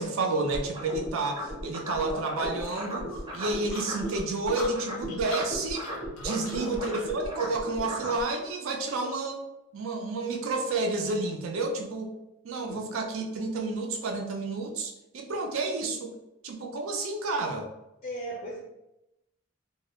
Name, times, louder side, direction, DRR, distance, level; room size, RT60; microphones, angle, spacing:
voice 1, 0.0-3.1 3.3-5.9 6.2-9.4 9.7-12.1 12.4-16.1 16.4-17.7, right 3 dB, 75° right, 3 dB, 0.4 m, -30 dB
sound 1, 0.5-4.2 4.4-8.2, equal, 20° right, 0.5 m, -36 dB
sound 2, 2.6-7.1, left 3 dB, 90° left, 0.5 m, -42 dB
voice 2, 6.4-6.8 12.7-12.9 18.0-18.6, right 1 dB, 30° left, -4 dB, 0.4 m, -38 dB
2.2 x 2.0 x 2.8 m, 0.90 s
head